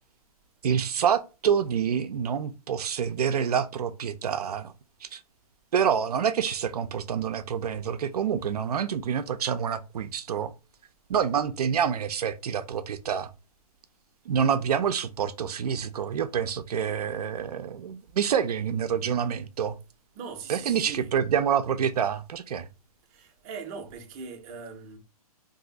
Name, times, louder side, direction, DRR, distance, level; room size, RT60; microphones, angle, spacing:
voice 1, 0.6-4.7 5.0-5.2 5.7-10.5 11.1-13.3 14.3-19.8 20.5-22.7, right 8 dB, 80° right, 0.4 m, -27 dB
voice 2, 20.1-21.1 23.1-25.0, right 5 dB, 25° right, 0.6 m, -40 dB
2.6 x 2.4 x 3.9 m
hypercardioid pair, 150°, 19 cm